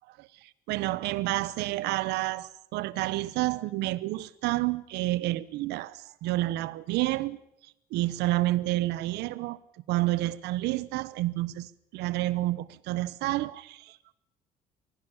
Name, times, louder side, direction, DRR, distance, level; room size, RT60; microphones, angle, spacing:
voice 1, 0.2-7.4 7.9-9.6 9.9-14.1, right 17 dB, 90° right, 1.0 m, -29 dB
24.5 x 17.0 x 7.1 m
cardioid pair, 110°, 17 cm